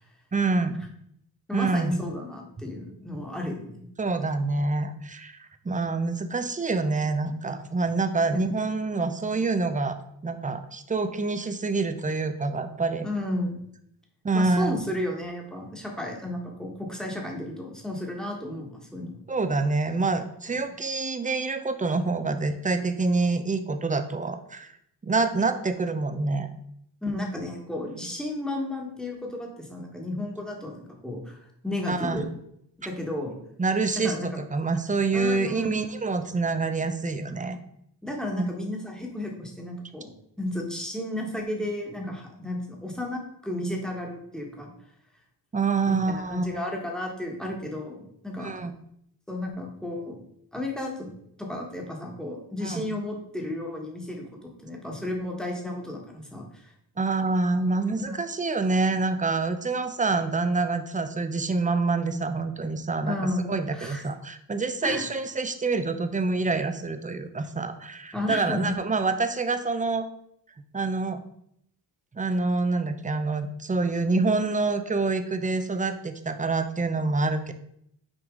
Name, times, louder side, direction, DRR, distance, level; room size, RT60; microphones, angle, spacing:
voice 1, 0.3-0.9 1.5-2.0 4.0-10.0 10.2-13.1 14.2-14.8 19.3-24.7 25.0-26.5 31.9-32.2 33.6-37.6 38.4-38.5 45.5-46.7 48.4-48.7 52.6-52.9 57.0-63.2 63.5-70.1 70.7-71.2 72.1-77.5, right 3 dB, 20° right, 9 dB, 0.6 m, -26 dB
voice 2, 1.5-3.8 8.3-8.4 13.0-13.6 14.3-19.2 27.0-32.3 32.8-33.4 34.0-34.3 35.1-35.7 38.0-40.1 40.4-44.7 45.8-48.6 49.3-50.2 50.5-51.1 51.4-56.7 58.0-58.2 63.0-64.0 64.8-65.0 68.1-68.7, left 1 dB, ahead, 0 dB, 1.4 m, -33 dB
6.2 x 4.7 x 3.8 m, 0.72 s
cardioid pair, 95°, 42 cm